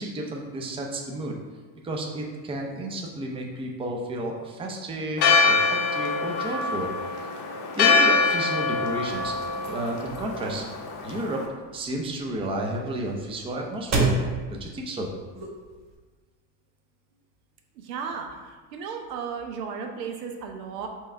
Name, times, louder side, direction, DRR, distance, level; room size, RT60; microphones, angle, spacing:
voice 1, 0.0-1.3 1.8-6.9 7.2-7.4 7.8-9.3 9.7-10.6 11.0-11.4 11.7-14.2 14.5-15.1, right 1 dB, 10° right, 0 dB, 0.5 m, -32 dB
Church bell, 5.2-11.5, left 4 dB, 55° left, 0.9 m, -24 dB
sound 1, 8.9-15.9, right 3 dB, 35° right, 1.0 m, -33 dB
voice 2, 17.8-18.4 18.7-20.9, right 6 dB, 85° right, 3 dB, 0.7 m, -34 dB
4.5 x 2.4 x 4.3 m, 1.4 s
supercardioid pair, 95°, 48 cm